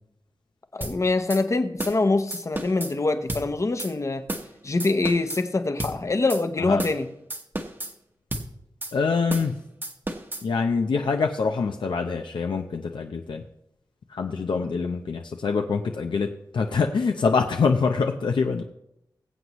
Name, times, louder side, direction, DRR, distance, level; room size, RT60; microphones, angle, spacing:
voice 1, 0.7-4.3 4.6-7.1, left 3 dB, 40° left, 9 dB, 0.9 m, -24 dB
sound 1, 0.8-1.0 1.3-1.4 1.8-2.0 2.3-2.9 3.3-3.5 3.8-3.9 4.3-4.5 4.8-5.4 5.8-6.0 6.3-6.4 6.8-7.0 7.3-7.9 8.3-8.5 8.8-8.9 9.3-9.5 9.8-10.4, right 1 dB, 25° right, 1.1 m, -32 dB
voice 2, 8.9-9.5 10.4-13.4 14.1-16.3 16.5-18.6, left 5 dB, 80° left, 4 dB, 0.7 m, -25 dB
21.5 x 7.9 x 3.1 m, 0.80 s
wide cardioid pair, 90°, 8 cm